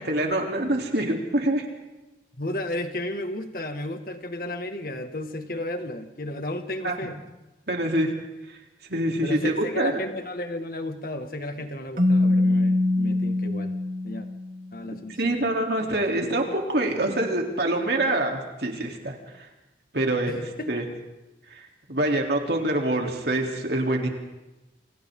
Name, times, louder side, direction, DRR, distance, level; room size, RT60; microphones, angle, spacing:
voice 1, 0.0-1.7 6.8-6.9 7.7-8.1 8.9-9.9 14.8-19.5 19.9-20.4 20.7-20.8 21.5-24.1, right 1 dB, 65° right, 1 dB, 3.6 m, -25 dB
voice 2, 2.4-7.2 9.2-13.7 14.0-14.3 14.7-15.5 20.3-20.8 22.0-22.1, left 1 dB, 50° left, 6 dB, 2.0 m, -33 dB
Keyboard (musical), 12.0-14.7, left 2 dB, 50° right, 2.3 m, -23 dB
29.0 x 26.5 x 3.9 m, 1.0 s
head